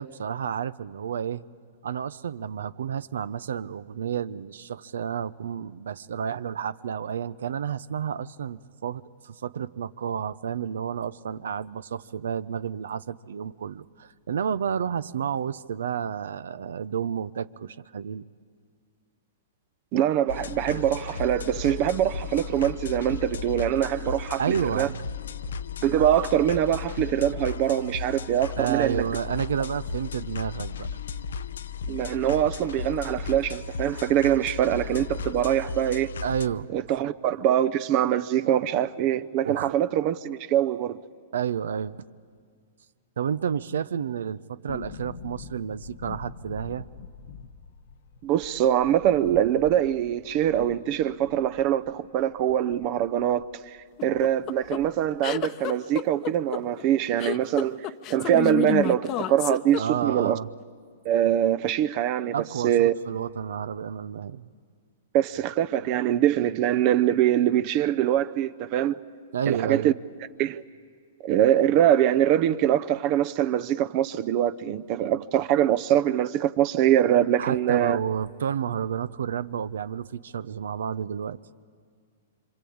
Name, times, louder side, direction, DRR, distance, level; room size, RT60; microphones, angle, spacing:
voice 1, 0.0-1.4 1.8-18.3 24.4-25.1 28.6-30.9 36.2-37.1 39.4-39.8 41.3-42.0 43.2-46.9 59.8-60.5 62.3-64.5 69.3-69.9 77.4-81.4, right 8 dB, 80° right, 0.7 m, -31 dB
voice 2, 19.9-24.9 25.8-29.1 31.9-36.1 36.7-41.0 48.2-57.8 58.1-60.4 61.0-62.3 62.6-62.9 65.1-69.0 69.5-69.9 70.4-70.6 71.2-78.0, right 11 dB, 40° right, 0.7 m, -23 dB
sound 1, 20.3-36.5, left 6 dB, 85° left, 0.7 m, -35 dB
sound 2, 44.7-53.5 53.8-53.9 54.1-55.2 55.4-55.5, left 6 dB, 65° left, 1.1 m, -45 dB
sound 3, 54.0-60.3, left 14 dB, 35° left, 0.8 m, -30 dB
26.5 x 25.0 x 8.7 m
hypercardioid pair, 140°, 0 cm